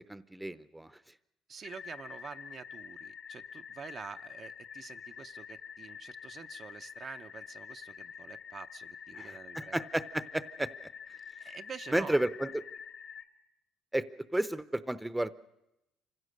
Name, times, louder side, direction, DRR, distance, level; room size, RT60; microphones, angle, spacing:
voice 1, 0.1-0.9 9.1-10.7 11.9-12.5 13.9-14.0 14.3-15.3, right 1 dB, 10° right, 14 dB, 0.7 m, -32 dB
voice 2, 1.5-9.8 11.4-12.2, right 6 dB, 50° right, 7 dB, 0.7 m, -47 dB
sound 1, 1.6-13.2, left 7 dB, 75° left, 1.8 m, -47 dB
25.5 x 16.0 x 6.6 m, 0.89 s
supercardioid pair, 75°, 0 cm